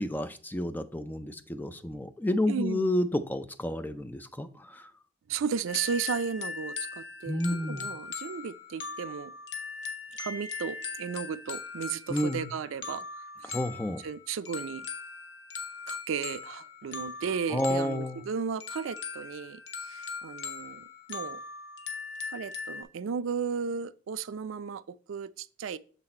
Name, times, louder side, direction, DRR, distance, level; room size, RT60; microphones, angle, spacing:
voice 1, 0.0-4.9 7.3-7.9 12.1-12.5 13.5-14.0 17.5-18.2, left 1 dB, 10° left, 0.3 m, -30 dB
voice 2, 2.5-2.9 5.3-9.3 10.2-13.1 13.4-13.6 14.0-14.9 15.9-21.4 22.3-24.8 25.1-25.8, right 6 dB, 85° right, 0.4 m, -34 dB
sound 1, 5.7-22.8, left 5 dB, 65° left, 0.9 m, -40 dB
6.9 x 4.1 x 4.2 m
head